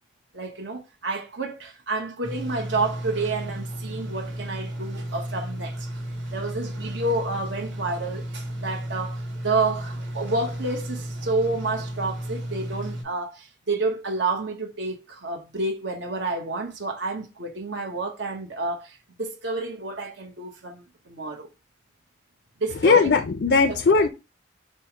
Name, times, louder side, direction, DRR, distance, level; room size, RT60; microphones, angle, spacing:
voice 1, 0.3-5.9 6.3-21.5 22.6-23.1, right 3 dB, 70° right, 1.0 m, -29 dB
sound 1, 2.2-13.0, right 1 dB, 85° right, 1.8 m, -33 dB
voice 2, 22.8-24.1, left 4 dB, 60° left, 0.4 m, -18 dB
5.4 x 2.1 x 4.5 m
head